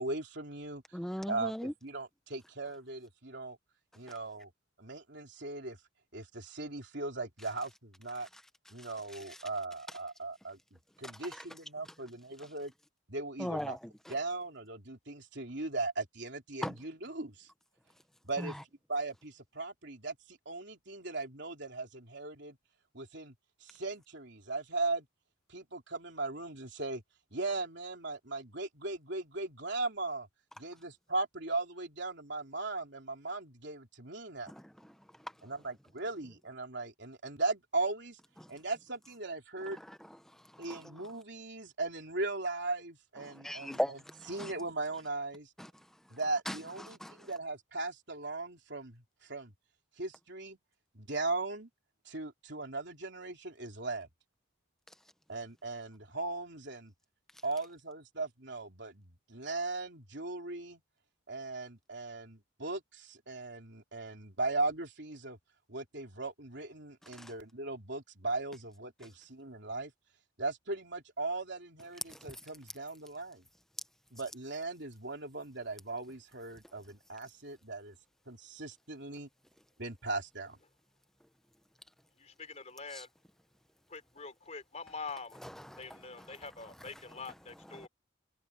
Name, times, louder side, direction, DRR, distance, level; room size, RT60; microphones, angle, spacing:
voice 1, 0.0-0.8 1.3-1.5 1.8-3.6 4.0-4.5 4.8-5.8 6.1-8.3 8.7-12.7 13.1-13.8 14.1-17.5 18.2-18.6 18.9-22.6 22.9-23.3 23.6-25.1 25.5-27.0 27.3-30.3 30.6-34.5 35.4-38.2 38.5-39.8 40.6-44.0 44.3-45.5 46.1-49.5 50.0-50.6 50.9-51.7 52.1-54.1 55.3-56.9 57.4-60.8 61.3-65.4 65.7-69.9 70.4-73.4 74.1-78.0 78.3-79.3 79.8-80.6, right 3 dB, 55° right, 3.8 m, -38 dB
voice 2, 0.9-1.7 8.8-8.9 9.3-9.4 11.0-11.4 13.4-14.1 16.6-16.8 18.4-18.5 34.5-34.7 38.4-38.5 39.8-40.8 43.2-44.5 45.6-45.7 46.5-47.3 67.1-67.3 72.1-72.3 82.9-83.0 85.4-86.4 87.7-87.9, equal, ahead, 1.0 m, -40 dB
voice 3, 82.1-83.1 83.9-85.4 85.8-87.9, left 4 dB, 30° left, 4.3 m, -45 dB
head